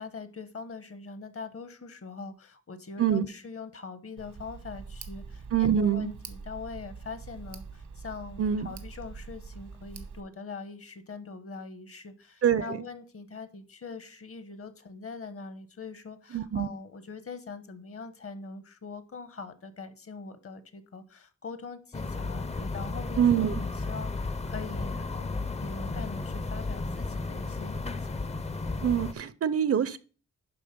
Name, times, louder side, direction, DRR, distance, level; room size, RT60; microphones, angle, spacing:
voice 1, 0.0-28.2, left 4 dB, 50° left, 0.9 m, -42 dB
Tick, 4.2-10.2, right 5 dB, 85° right, 1.2 m, -44 dB
voice 2, 5.5-6.1 8.4-8.7 12.4-12.7 16.3-16.7 23.2-23.6 28.8-30.0, right 8 dB, 50° right, 0.5 m, -25 dB
sound 1, 21.9-29.1, left 3 dB, 20° left, 0.5 m, -34 dB
11.0 x 3.7 x 5.1 m
wide cardioid pair, 170°, 29 cm